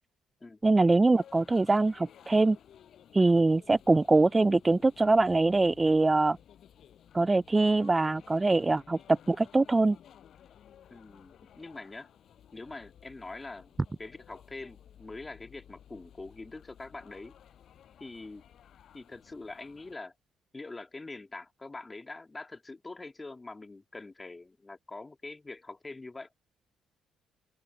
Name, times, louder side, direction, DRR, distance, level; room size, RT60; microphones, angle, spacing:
voice 1, 0.6-2.6 3.1-6.4 7.1-10.0, right 2 dB, 20° right, 0.3 m, -23 dB
Feira de Chantada Lugo, 1.1-19.9, left 9 dB, 60° left, 6.6 m, -56 dB
voice 2, 10.9-12.1 12.5-13.7 14.0-17.4 18.0-18.4 18.9-20.1 20.5-26.3, left 3 dB, 20° left, 1.9 m, -44 dB
open air
cardioid pair, 90°, 0 cm